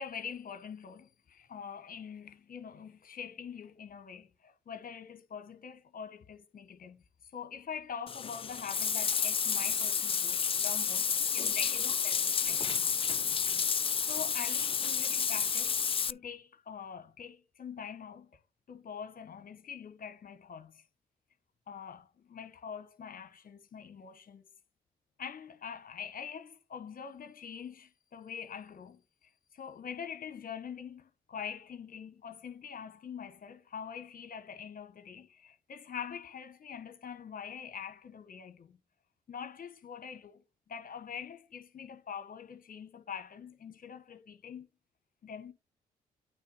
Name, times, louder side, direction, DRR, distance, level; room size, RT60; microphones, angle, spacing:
voice 1, 0.0-7.0 7.3-12.9 14.0-15.8 16.1-18.3 18.7-20.8 21.7-24.4 25.2-29.0 29.5-38.8 39.3-44.7 45.2-45.5, left 7 dB, 55° left, 1.3 m, -44 dB
Bathtub (filling or washing), 8.1-16.1, left 6 dB, 30° left, 0.4 m, -30 dB
9.1 x 3.6 x 5.4 m
hypercardioid pair, 45°, 18 cm